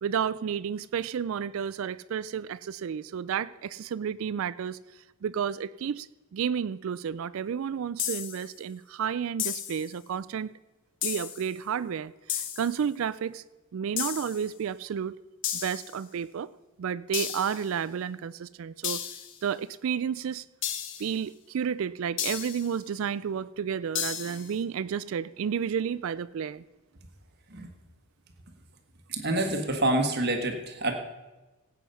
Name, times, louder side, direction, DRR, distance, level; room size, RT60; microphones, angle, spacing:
voice 1, 0.0-4.8 5.2-6.1 6.3-10.5 11.0-13.4 13.7-15.1 15.6-16.5 16.8-19.0 19.4-20.4 21.0-26.6, right 7 dB, 65° right, 17 dB, 0.3 m, -31 dB
sound 1, 8.0-8.5 9.4-9.9 11.0-11.5 12.3-12.8 14.0-14.5 15.4-16.0 17.1-17.7 18.8-19.4 20.6-21.2 22.2-22.7 24.0-24.5, left 9 dB, 55° left, 1.1 m, -33 dB
voice 2, 29.1-30.9, right 1 dB, 45° right, 4 dB, 1.4 m, -27 dB
17.0 x 8.3 x 5.6 m, 1.1 s
head